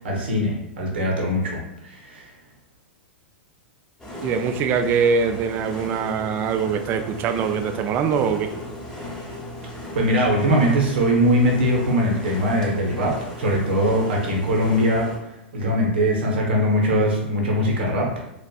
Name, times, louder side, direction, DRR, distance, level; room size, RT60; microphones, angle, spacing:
voice 1, 0.0-2.3 9.9-15.1 15.5-18.1, equal, 65° right, -1 dB, 0.9 m, -21 dB
sound 1, 4.0-15.2, left 1 dB, 10° left, 0.8 m, -36 dB
voice 2, 4.2-8.5, right 6 dB, 30° right, 7 dB, 0.3 m, -23 dB
4.2 x 2.4 x 2.3 m, 0.88 s
figure-of-eight pair, 100°, 6 cm